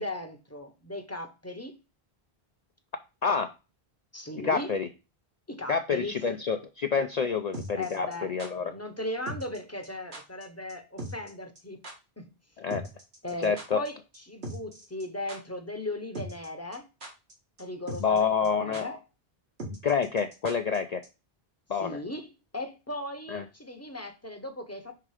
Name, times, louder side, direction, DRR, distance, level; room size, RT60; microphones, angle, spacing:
voice 1, 0.0-1.8 4.1-4.8 5.5-6.4 7.7-8.3 8.6-11.8 12.2-12.3 13.2-16.9 17.6-19.0 21.8-24.9, left 1 dB, 15° left, 0.8 m, -37 dB
voice 2, 4.4-4.9 5.7-8.7 12.6-12.8 13.4-13.8 18.0-18.8 19.8-21.0 21.7-22.0 23.3-23.4, left 6 dB, 55° left, 0.5 m, -28 dB
sound 1, 7.5-8.5 9.3-9.6 9.8-9.9 10.1-10.4 10.7-10.8 11.0-11.3 11.6-11.7 11.8-11.9 12.7-13.9 14.1-14.2 14.4-15.0 15.3-15.4 16.2-16.5 16.7-17.3 17.6-17.7 17.9-18.2 18.4-18.5 18.7-18.8 19.6-20.8 21.0-21.1, right 1 dB, 85° right, 2.0 m, -39 dB
5.8 x 3.6 x 4.8 m
omnidirectional pair, 1.0 m